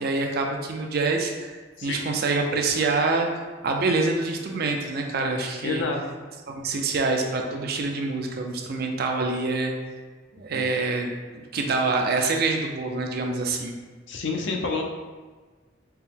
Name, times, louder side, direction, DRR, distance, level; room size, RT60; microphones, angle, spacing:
voice 1, 0.0-3.3 3.6-5.8 6.5-9.7 10.3-13.8, right 3 dB, 55° right, 3 dB, 0.4 m, -26 dB
voice 2, 5.6-6.0 10.5-10.7 14.1-14.9, left 4 dB, 75° left, 1 dB, 0.5 m, -28 dB
4.4 x 2.0 x 3.5 m, 1.4 s
head